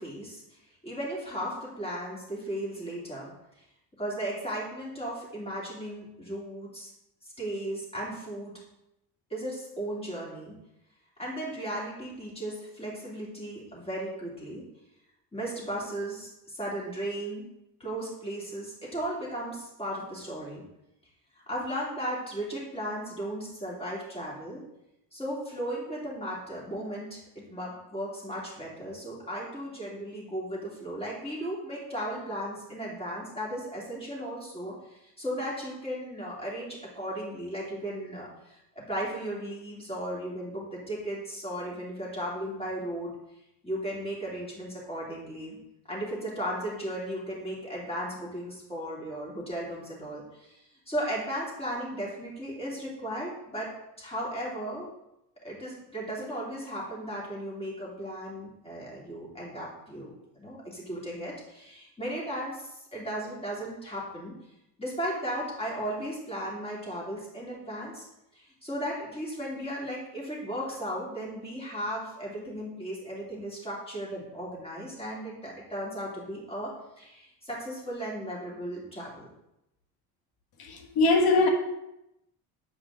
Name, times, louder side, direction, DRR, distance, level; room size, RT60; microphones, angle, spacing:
voice 1, 0.0-3.3 3.6-3.7 4.0-6.9 7.2-8.6 9.3-10.5 11.2-14.6 15.3-17.5 17.8-20.6 21.5-24.6 25.1-43.1 43.6-45.6 45.9-54.9 55.4-64.3 64.8-68.1 68.3-79.3, right 1 dB, 15° left, -5 dB, 3.0 m, -36 dB
voice 2, 80.6-81.5, left 3 dB, 65° left, 4 dB, 1.4 m, -22 dB
8.2 x 4.9 x 3.8 m, 0.87 s
cardioid pair, 110°, 39 cm